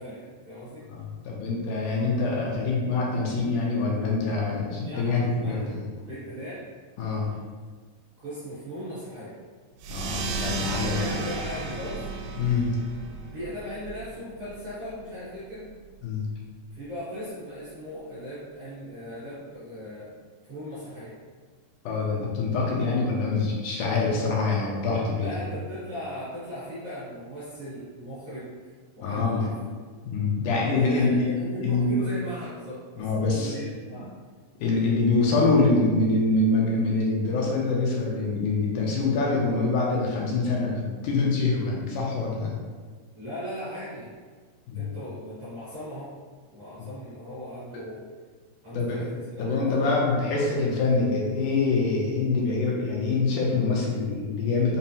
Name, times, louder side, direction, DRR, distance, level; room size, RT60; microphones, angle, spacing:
voice 1, 0.0-0.8 4.8-5.7 6.0-6.6 8.2-9.4 10.7-12.1 13.3-15.7 16.7-20.1 20.4-21.1 25.2-28.5 28.9-29.6 30.7-34.1 43.1-44.1 44.7-46.1 46.5-48.0 48.6-49.9, equal, 60° right, -12 dB, 1.5 m, -38 dB
voice 2, 0.9-5.8 7.0-7.3 9.9-11.2 12.4-12.8 16.0-16.2 21.9-25.3 29.0-29.5 30.1-31.9 33.0-33.6 34.6-42.6 44.7-44.9 46.8-46.9 48.7-49.0 49.4-54.8, left 3 dB, 80° left, -3 dB, 2.0 m, -25 dB
sound 1, 9.8-14.9, right 3 dB, 85° right, 2.1 m, -33 dB
5.4 x 2.0 x 2.7 m, 1.5 s
omnidirectional pair, 3.7 m